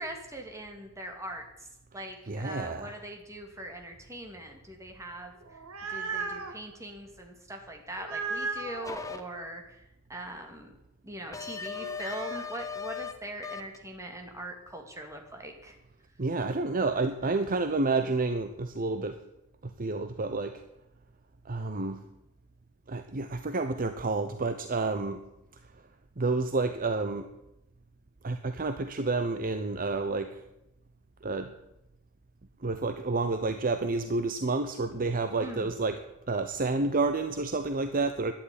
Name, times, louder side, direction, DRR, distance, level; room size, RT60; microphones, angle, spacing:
voice 1, 0.0-1.7 1.9-5.6 5.9-10.7 11.0-15.8 35.4-35.7, right 1 dB, 15° right, 3 dB, 2.5 m, -41 dB
voice 2, 2.3-3.0 16.2-19.2 19.8-20.6 21.5-22.1 22.9-25.2 26.2-27.3 28.2-30.3 31.2-31.5 32.6-36.0 36.3-38.3, right 3 dB, 40° right, 8 dB, 0.8 m, -29 dB
sound 1, 5.4-6.6 8.0-8.9 11.7-12.5, right 4 dB, 70° right, 1.8 m, -36 dB
sound 2, 8.8-9.2 11.3-13.1 13.4-13.8, left 6 dB, 15° left, 1.0 m, -37 dB
11.5 x 9.9 x 9.9 m, 0.89 s
head